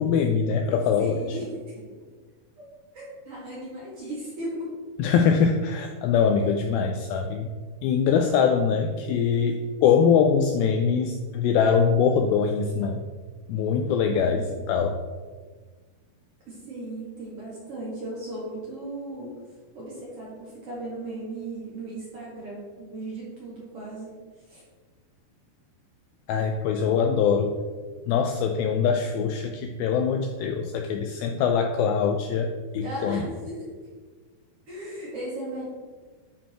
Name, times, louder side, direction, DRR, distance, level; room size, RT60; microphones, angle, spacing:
voice 1, 0.0-1.2 5.0-7.5 7.8-13.0 13.5-15.0 26.3-27.5 28.1-33.2, left 6 dB, 85° left, 4 dB, 2.2 m, -23 dB
voice 2, 1.0-1.8 2.6-2.7 2.9-4.7 5.0-5.1 13.9-14.6 16.5-19.3 19.7-24.2 24.5-24.6 32.8-33.6 34.7-35.6, right 1 dB, 45° right, -6 dB, 2.4 m, -36 dB
10.5 x 4.4 x 4.3 m, 1.4 s
omnidirectional pair, 4.7 m